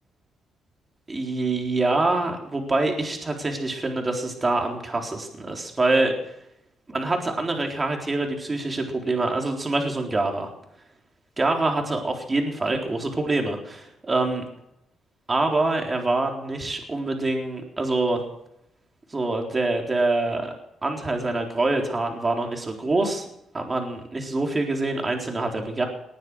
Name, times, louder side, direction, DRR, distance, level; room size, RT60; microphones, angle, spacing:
voice 1, 1.1-6.2 6.9-10.5 11.4-14.5 15.3-18.2 19.1-20.5 20.8-23.3 23.5-25.9, right 2 dB, 25° right, 2 dB, 3.9 m, -25 dB
19.5 x 9.5 x 6.3 m, 0.81 s
cardioid pair, 90°, 0 cm